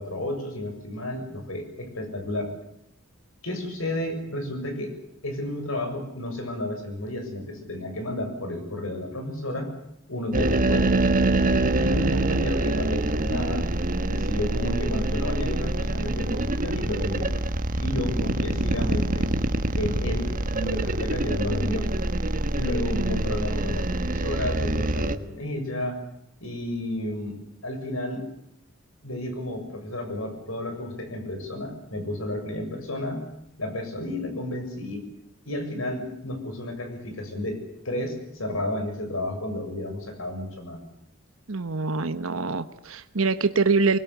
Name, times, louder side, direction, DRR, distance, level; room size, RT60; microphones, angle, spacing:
voice 1, 0.0-2.5 3.4-4.9 5.2-9.7 10.1-10.9 11.8-13.6 14.0-17.3 17.8-19.3 19.7-21.9 22.6-26.0 26.4-28.3 29.0-33.2 33.6-35.1 35.5-37.6 37.8-40.8, left 1 dB, 75° left, 6 dB, 7.2 m, -32 dB
sound 1, 10.3-25.1, right 2 dB, 40° right, 1.5 m, -25 dB
voice 2, 22.9-23.2 41.5-44.0, right 4 dB, 75° right, 10 dB, 1.1 m, -25 dB
24.0 x 21.0 x 8.3 m, 0.79 s
head